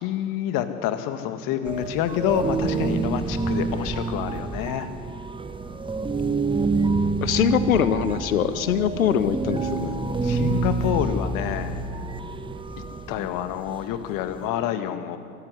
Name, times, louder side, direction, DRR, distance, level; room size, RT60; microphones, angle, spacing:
voice 1, 0.0-4.9 10.2-11.8 13.1-15.2, left 10 dB, 50° left, 9 dB, 1.9 m, -27 dB
sound 1, 1.7-14.5, right 4 dB, 10° right, 1.3 m, -27 dB
voice 2, 7.2-9.9, left 8 dB, 80° left, 12 dB, 1.6 m, -22 dB
24.5 x 15.0 x 9.8 m, 2.2 s
hypercardioid pair, 85°, 41 cm